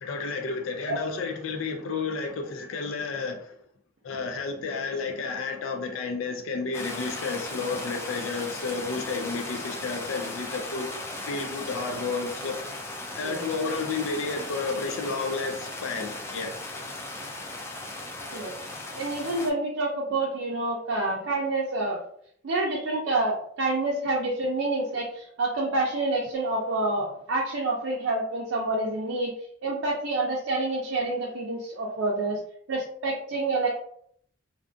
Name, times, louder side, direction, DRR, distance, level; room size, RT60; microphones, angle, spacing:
voice 1, 0.0-3.4 4.0-10.9 11.3-12.6 13.2-16.5, left 4 dB, 85° left, 0.4 m, -31 dB
sound 1, 6.7-19.5, left 2 dB, 15° left, 0.3 m, -37 dB
voice 2, 18.9-22.0 22.4-29.3 29.6-32.4 32.7-33.7, right 2 dB, 70° right, 0.5 m, -28 dB
2.5 x 2.3 x 2.5 m
head